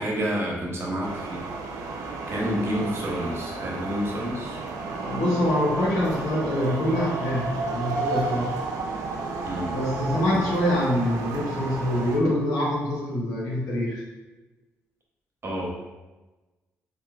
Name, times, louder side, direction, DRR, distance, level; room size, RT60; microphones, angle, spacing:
voice 1, 0.0-1.5 2.3-4.6 9.4-9.8 10.3-10.5 15.4-15.7, equal, 45° right, -2 dB, 0.8 m, -29 dB
sound 1, 1.0-12.2, right 3 dB, 80° right, 0.4 m, -32 dB
voice 2, 4.9-8.5 9.7-14.0, left 1 dB, 90° left, -5 dB, 0.9 m, -25 dB
3.1 x 2.4 x 2.4 m, 1.1 s
cardioid pair, 70°, 6 cm